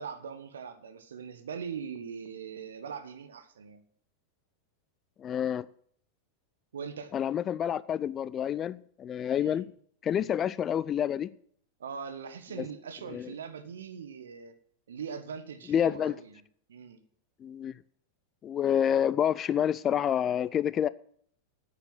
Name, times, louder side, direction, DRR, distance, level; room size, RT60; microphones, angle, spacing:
voice 1, 0.0-3.8 6.7-7.1 9.4-9.5 10.1-10.5 11.8-14.6 14.9-16.3 16.7-17.0, right 6 dB, 65° right, 1.3 m, -41 dB
voice 2, 5.2-5.7 7.1-9.7 10.0-11.3 12.6-12.7 13.1-13.3 15.7-16.2 17.4-17.8 18.4-20.9, left 9 dB, 25° left, 0.4 m, -28 dB
9.5 x 8.8 x 7.7 m
figure-of-eight pair, 90°, 0 cm